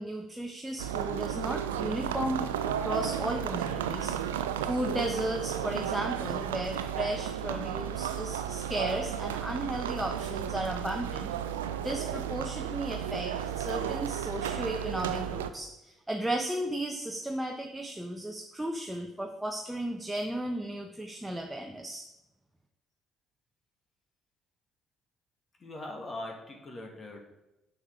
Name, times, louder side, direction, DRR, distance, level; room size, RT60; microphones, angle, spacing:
voice 1, 0.0-4.2 4.6-11.3 11.8-22.1, right 1 dB, 10° right, 3 dB, 1.0 m, -35 dB
sound 1, 0.8-15.5, right 9 dB, 85° right, 0.4 m, -33 dB
voice 2, 25.6-27.2, left 2 dB, 35° left, 1 dB, 2.1 m, -41 dB
9.7 x 6.6 x 3.7 m, 0.94 s
hypercardioid pair, 50°, 0 cm